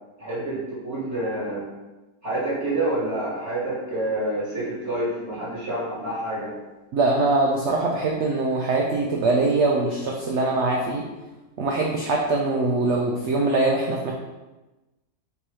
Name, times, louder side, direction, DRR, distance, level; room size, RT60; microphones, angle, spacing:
voice 1, 0.2-1.6 2.2-6.5, right 1 dB, 40° right, -9 dB, 1.7 m, -28 dB
voice 2, 6.9-11.0 11.6-14.1, right 2 dB, 85° right, -1 dB, 0.6 m, -22 dB
3.5 x 2.9 x 4.7 m, 1.1 s
omnidirectional pair, 1.8 m